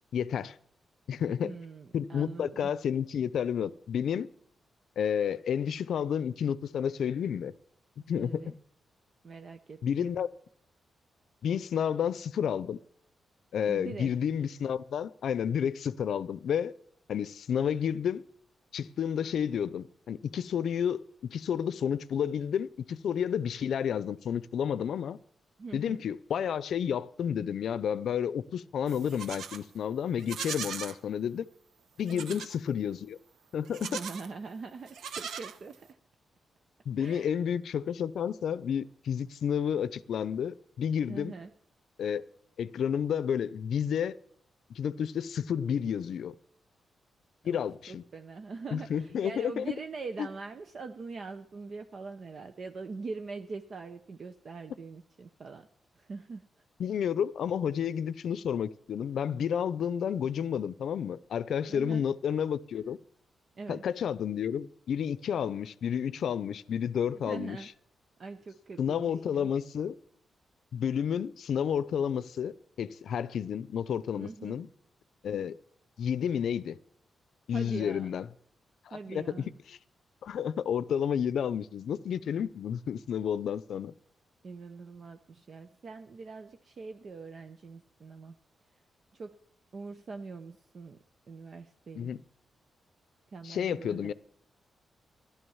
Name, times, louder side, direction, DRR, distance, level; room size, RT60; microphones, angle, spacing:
voice 1, 0.1-0.5 1.1-1.5 1.9-4.3 5.0-7.5 8.1-8.4 9.8-10.3 11.4-12.8 13.5-16.7 17.1-18.2 18.7-25.2 25.7-31.4 32.0-33.2 33.5-34.0 36.9-41.3 42.0-42.2 42.6-44.2 44.8-46.3 47.4-48.0 48.7-49.6 50.2-50.3 56.8-63.0 63.7-67.6 68.8-70.0 70.7-74.7 75.2-75.6 76.0-76.8 77.5-78.3 78.9-79.2 80.2-83.9 91.9-92.2 93.4-94.1, left 8 dB, 75° left, 0.6 m, -31 dB
voice 2, 1.4-2.7 8.2-8.5 9.2-10.1 13.7-14.1 25.6-26.0 32.1-32.5 33.8-35.9 37.0-37.4 41.1-41.5 47.4-47.6 47.9-55.7 55.9-56.4 61.7-62.1 63.5-63.8 67.1-67.7 68.2-69.5 74.2-74.6 77.5-78.1 78.9-79.5 84.4-88.4 89.1-89.4 89.7-92.1 93.3-94.1, right 4 dB, 45° right, 0.8 m, -43 dB
Livestock farm animals working animals, 28.9-29.6 30.2-31.0 32.1-32.6 33.6-34.3 34.9-35.9, right 7 dB, 90° right, 0.9 m, -39 dB
14.5 x 11.5 x 7.1 m
wide cardioid pair, 145°, 0 cm